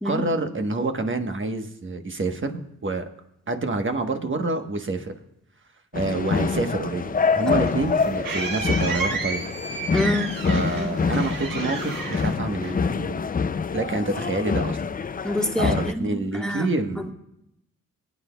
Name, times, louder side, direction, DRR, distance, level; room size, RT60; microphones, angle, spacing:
voice 1, 0.0-3.1 3.5-5.1 5.9-9.5 10.5-13.2 13.7-14.8 15.6-17.1, right 2 dB, 35° right, 6 dB, 1.2 m, -27 dB
sound 1, 5.9-15.9, left 5 dB, 25° left, 0.4 m, -26 dB
sound 2, 7.3-13.1, right 3 dB, 80° right, 1.5 m, -32 dB
voice 2, 9.9-10.4 10.7-11.0 15.2-16.7, left 1 dB, ahead, 2 dB, 1.4 m, -27 dB
21.0 x 9.4 x 2.3 m, 0.82 s
cardioid pair, 60°, 33 cm